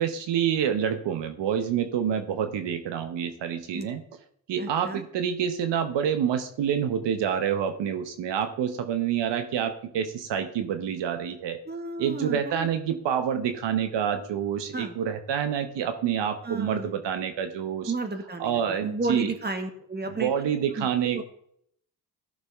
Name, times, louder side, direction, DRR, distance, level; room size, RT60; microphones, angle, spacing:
voice 1, 0.0-4.0 4.5-11.6 12.0-17.9 18.4-19.3 20.1-21.2, right 8 dB, 80° right, 8 dB, 1.0 m, -27 dB
voice 2, 4.6-5.0 11.7-12.7 14.7-14.9 16.4-16.9 17.9-20.3 20.8-20.9 21.1-21.2, right 3 dB, 25° right, 6 dB, 1.8 m, -32 dB
14.5 x 6.6 x 3.6 m, 0.67 s
cardioid pair, 70°, 43 cm